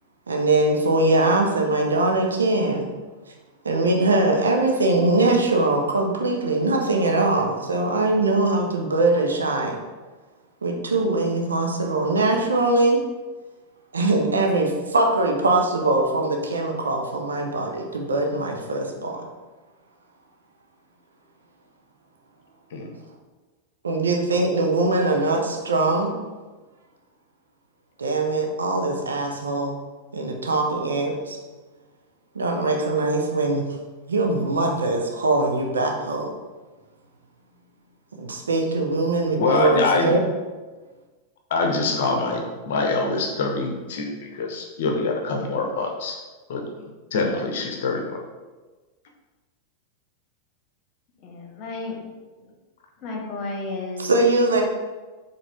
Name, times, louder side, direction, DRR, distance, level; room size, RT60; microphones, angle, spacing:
voice 1, 0.3-2.9 3.6-9.8 10.6-13.0 13.9-19.2 23.8-26.1 28.0-29.8 30.1-31.4 32.3-33.7 34.1-36.3 38.1-40.2 54.0-54.6, right 2 dB, 70° right, 2 dB, 0.6 m, -22 dB
voice 2, 39.4-40.1 41.5-46.2 46.5-46.8 47.1-48.2, left 3 dB, 55° left, 2 dB, 0.7 m, -25 dB
voice 3, 51.2-52.0 52.4-52.5 53.0-54.1, left 3 dB, 40° left, 0 dB, 1.0 m, -33 dB
4.7 x 3.2 x 3.5 m, 1.3 s
figure-of-eight pair, 90°, 0 cm